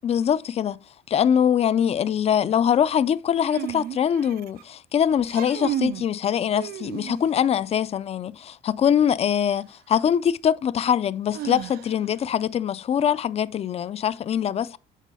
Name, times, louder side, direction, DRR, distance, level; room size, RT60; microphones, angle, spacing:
voice 1, 0.0-0.8 1.1-14.8, left 8 dB, 40° left, 0.4 m, -23 dB
sound 1, 3.4-4.6 5.2-6.1 6.5-7.5 9.4-9.5 11.3-12.2, right 12 dB, 65° right, 0.4 m, -33 dB
8.3 x 3.8 x 4.1 m
cardioid pair, 110°, 17 cm